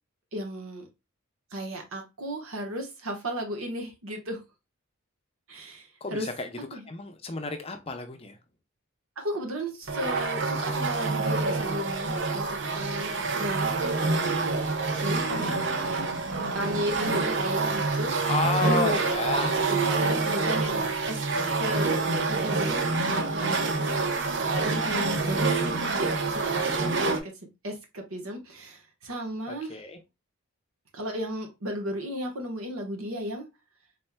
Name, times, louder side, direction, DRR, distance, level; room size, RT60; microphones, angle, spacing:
voice 1, 0.3-0.9 1.5-4.4 5.5-6.3 6.7-6.8 9.2-13.7 15.0-15.5 16.5-18.3 18.6-19.0 19.7-21.2 21.6-21.9 22.3-22.8 23.2-24.2 24.6-27.3 27.6-29.7 30.9-33.5, equal, 75° right, 3 dB, 1.2 m, -34 dB
voice 2, 6.0-8.4 13.1-13.6 15.3-15.6 18.3-19.6 21.3-21.6 25.4-25.6 29.5-30.0, left 3 dB, 25° left, 6 dB, 0.5 m, -32 dB
sound 1, 9.9-27.2, right 3 dB, 55° right, 0.6 m, -27 dB
4.2 x 3.6 x 2.2 m, 0.24 s
head